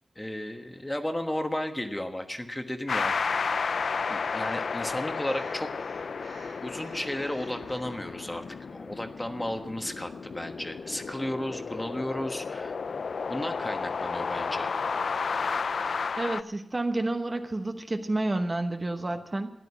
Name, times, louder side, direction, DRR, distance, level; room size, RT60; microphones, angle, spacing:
voice 1, 0.1-3.2 4.1-5.7 6.6-12.8 13.3-14.7, left 1 dB, 10° left, 6 dB, 1.3 m, -34 dB
sound 1, 2.9-16.4, left 5 dB, 70° left, 0.4 m, -32 dB
Breathing, 4.3-8.0, right 4 dB, 85° right, 2.2 m, -53 dB
voice 2, 16.2-19.5, right 2 dB, 30° right, 6 dB, 1.0 m, -30 dB
14.0 x 11.0 x 8.2 m, 0.93 s
wide cardioid pair, 110°, 0 cm